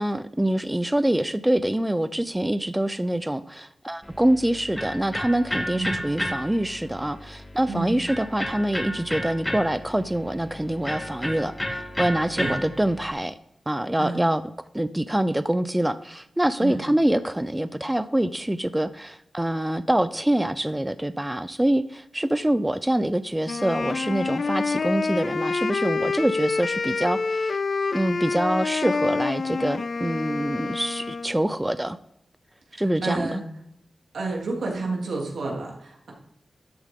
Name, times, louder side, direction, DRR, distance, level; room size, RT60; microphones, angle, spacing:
voice 1, 0.0-13.4 13.7-14.4 14.7-27.6 27.9-32.0 32.8-33.4, right 1 dB, 10° right, 13 dB, 0.5 m, -25 dB
Electric guitar, 4.0-13.1, equal, 10° left, 2.1 m, -33 dB
Wind instrument woodwind instrument, 23.5-31.4, left 4 dB, 60° left, 0.4 m, -27 dB
voice 2, 32.7-33.4 34.1-36.1, right 3 dB, 85° right, -1 dB, 3.0 m, -30 dB
13.0 x 8.5 x 3.7 m, 0.75 s
cardioid pair, 70°, 0 cm